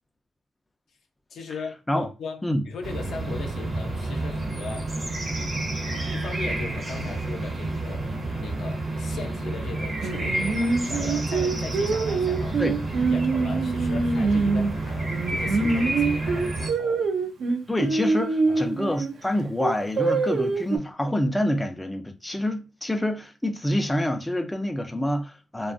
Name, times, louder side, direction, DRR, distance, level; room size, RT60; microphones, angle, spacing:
voice 1, 1.3-4.9 5.3-5.7 6.1-8.1 8.4-12.7 13.1-17.1 18.5-18.6, left 4 dB, 75° left, 0.5 m, -38 dB
sound 1, 2.8-16.7, right 2 dB, 45° right, 0.7 m, -30 dB
Singing, 10.0-14.7 15.1-19.1 19.6-20.8, right 4 dB, 65° right, 0.4 m, -25 dB
voice 2, 17.7-25.7, left 1 dB, 10° left, 0.3 m, -27 dB
2.4 x 2.3 x 2.4 m
cardioid pair, 70°, 0 cm